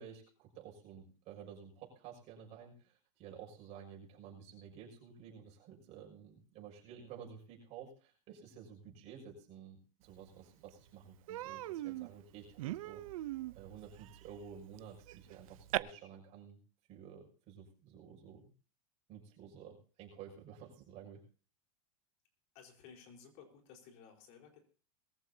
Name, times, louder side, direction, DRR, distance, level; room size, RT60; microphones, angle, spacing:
voice 1, 0.0-13.0 13.5-16.6 16.9-18.5 19.1-21.2, right 7 dB, 40° right, 0 dB, 6.3 m, -52 dB
Human voice, 10.3-10.4 10.7-10.9 11.3-15.8, right 16 dB, 75° right, 0.7 m, -41 dB
voice 2, 22.5-24.6, left 6 dB, 50° left, 3 dB, 4.4 m, -56 dB
21.0 x 14.5 x 2.8 m, 0.38 s
supercardioid pair, 155°, 18 cm